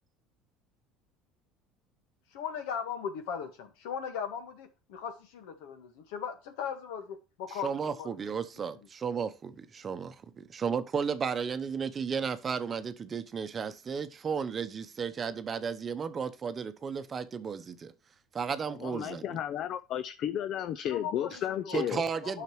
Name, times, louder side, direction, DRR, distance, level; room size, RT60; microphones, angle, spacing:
voice 1, 2.3-8.3 20.8-22.4, left 7 dB, 80° left, 1.6 m, -38 dB
voice 2, 7.6-17.9 18.3-19.4 21.7-22.4, right 6 dB, 30° right, 0.8 m, -34 dB
voice 3, 18.8-22.0, left 10 dB, 55° left, 0.5 m, -33 dB
9.2 x 5.8 x 3.1 m
supercardioid pair, 105°, 0 cm